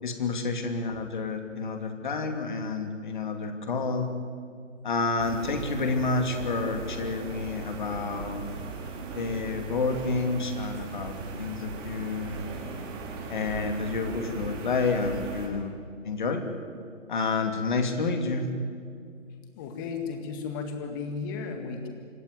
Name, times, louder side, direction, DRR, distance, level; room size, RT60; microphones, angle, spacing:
voice 1, 0.0-4.1 4.8-8.5 9.1-12.5 13.3-15.8 16.0-16.4 17.1-18.5, left 4 dB, 40° left, 6 dB, 2.6 m, -29 dB
sound 1, 5.2-15.5, right 4 dB, 15° right, 2.3 m, -38 dB
voice 2, 19.6-21.9, left 5 dB, 15° left, 6 dB, 1.9 m, -34 dB
25.5 x 14.5 x 9.7 m, 2.2 s
figure-of-eight pair, 145°, 37 cm